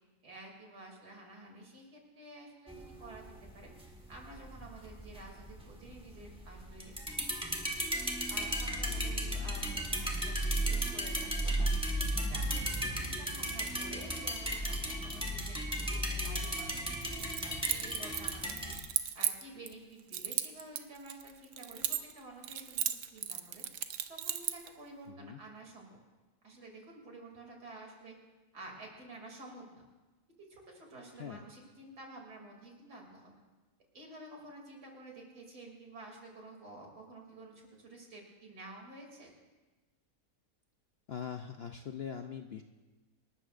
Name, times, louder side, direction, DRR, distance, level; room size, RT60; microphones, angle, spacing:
voice 1, 0.2-3.2 3.5-3.7 4.1-6.9 8.3-11.5 11.9-18.7 19.1-23.6 24.1-26.0 26.4-28.1 28.5-29.8 30.4-33.3 33.9-39.3, right 2 dB, 80° right, 0 dB, 3.4 m, -51 dB
sound 1, 2.7-18.8, right 1 dB, 5° right, 1.4 m, -35 dB
Keys jangling, 17.0-19.7 20.1-22.2 22.4-24.7, right 9 dB, 60° right, 0.9 m, -35 dB
voice 2, 25.1-25.4 31.2-31.4 41.1-42.6, left 8 dB, 60° left, 6 dB, 0.6 m, -42 dB
26.5 x 12.5 x 2.5 m, 1.2 s
omnidirectional pair, 1.7 m